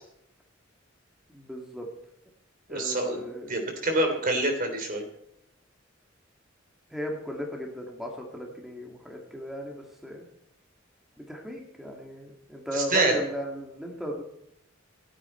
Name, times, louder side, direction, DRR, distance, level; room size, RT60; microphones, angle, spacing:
voice 1, 1.3-1.9 2.7-3.5 6.9-10.2 11.2-14.2, equal, ahead, 0 dB, 2.1 m, -36 dB
voice 2, 2.7-5.0 12.7-13.2, right 1 dB, 45° right, 4 dB, 3.3 m, -26 dB
27.0 x 9.3 x 4.4 m, 0.76 s
head